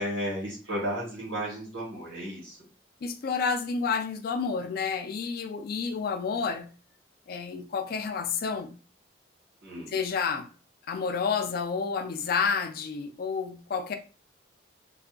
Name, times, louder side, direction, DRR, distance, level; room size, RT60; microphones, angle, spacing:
voice 1, 0.0-2.7 9.6-10.0, equal, 80° right, 1.2 m, -33 dB
voice 2, 3.0-6.7 7.3-8.8 9.9-10.5 10.9-13.9, left 5 dB, 50° left, 0.3 m, -30 dB
2.6 x 2.3 x 2.2 m
head